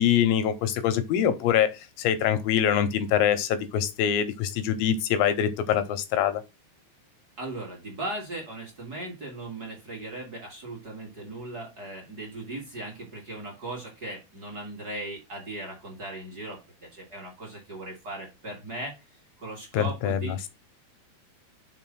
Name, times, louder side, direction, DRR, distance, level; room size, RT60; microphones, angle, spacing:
voice 1, 0.0-6.4 19.7-20.5, left 9 dB, 80° left, 2.2 m, -24 dB
voice 2, 7.4-19.1 19.4-20.4, right 2 dB, 35° right, 1.8 m, -38 dB
5.9 x 3.8 x 6.0 m
omnidirectional pair, 4.7 m